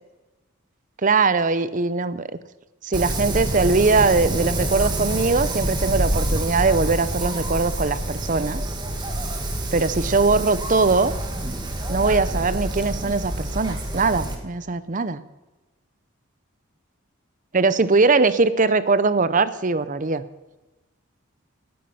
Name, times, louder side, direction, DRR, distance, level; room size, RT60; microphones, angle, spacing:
voice 1, 1.0-2.3 2.8-8.7 9.7-11.1 11.9-15.2 17.5-20.3, right 3 dB, 40° right, 14 dB, 0.6 m, -21 dB
Wind, 2.9-14.3, right 1 dB, 20° right, 1.6 m, -27 dB
17.0 x 9.6 x 5.7 m, 1.1 s
head